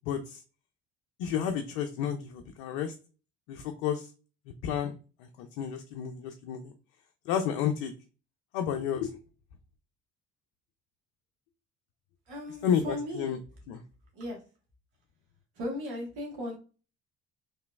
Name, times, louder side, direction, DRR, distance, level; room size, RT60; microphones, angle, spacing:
voice 1, 0.1-0.4 1.2-2.9 3.5-4.1 4.6-4.9 5.2-6.7 7.3-7.9 8.5-9.1 12.6-13.4 13.7-13.8, left 8 dB, 80° left, 5 dB, 0.5 m, -31 dB
voice 2, 12.3-13.4 14.1-14.4 15.5-16.6, left 1 dB, 85° right, 0 dB, 1.3 m, -36 dB
3.2 x 2.9 x 2.2 m, 0.35 s
hypercardioid pair, 60°, 33 cm